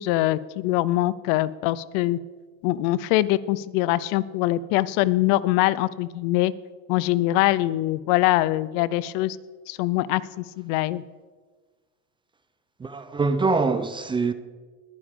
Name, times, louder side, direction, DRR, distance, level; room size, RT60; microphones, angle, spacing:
voice 1, 0.0-2.2 2.6-6.5 6.9-9.4 9.7-11.0, left 16 dB, 55° left, 0.6 m, -23 dB
voice 2, 12.8-14.3, right 4 dB, 15° right, 0.5 m, -24 dB
21.0 x 9.8 x 3.7 m
supercardioid pair, 135°, 39 cm